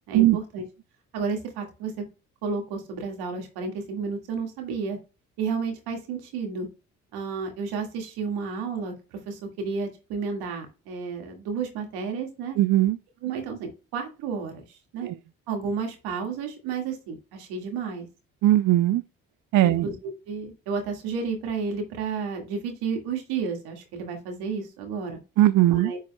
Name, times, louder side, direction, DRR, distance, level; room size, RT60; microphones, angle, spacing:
voice 1, 0.1-0.6 1.1-2.0 2.4-5.0 5.4-6.7 7.1-12.6 13.2-15.1 15.5-18.1 19.6-19.9 20.3-25.2 25.7-26.0, right 5 dB, 80° right, 2.0 m, -31 dB
voice 2, 12.6-13.0 15.0-15.1 18.4-19.0 19.5-19.9 25.4-25.9, right 14 dB, 55° right, 0.5 m, -19 dB
9.9 x 4.7 x 2.2 m
hypercardioid pair, 50°, 38 cm